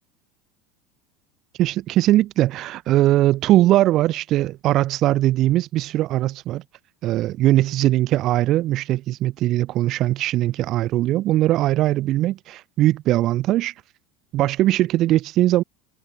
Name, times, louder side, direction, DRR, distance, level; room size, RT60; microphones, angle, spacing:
voice 1, 1.6-6.6 7.0-13.7 14.3-15.6, right 15 dB, 45° right, 1.9 m, -20 dB
figure-of-eight pair, 75°, 0 cm